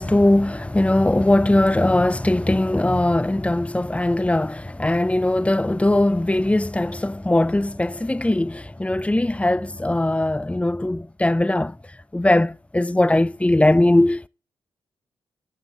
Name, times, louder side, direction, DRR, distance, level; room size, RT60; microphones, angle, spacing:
voice 1, 0.0-11.7 12.1-14.3, left 1 dB, 10° left, 0.6 m, -20 dB
13.0 x 5.7 x 4.6 m
supercardioid pair, 40°, 11 cm